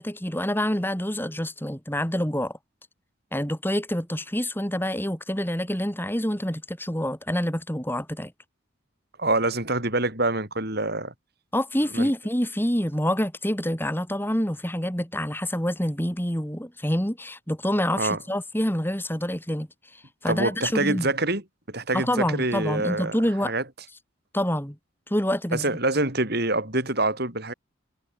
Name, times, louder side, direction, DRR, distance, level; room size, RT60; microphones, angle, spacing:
voice 1, 0.0-2.6 3.3-8.3 11.5-21.1 21.9-23.5 24.3-24.8 25.1-25.8, equal, 10° left, 7.7 m, -27 dB
voice 2, 9.2-11.1 11.9-12.1 18.0-18.2 20.3-23.2 23.4-23.6 25.5-27.5, right 2 dB, 55° right, 7.2 m, -26 dB
head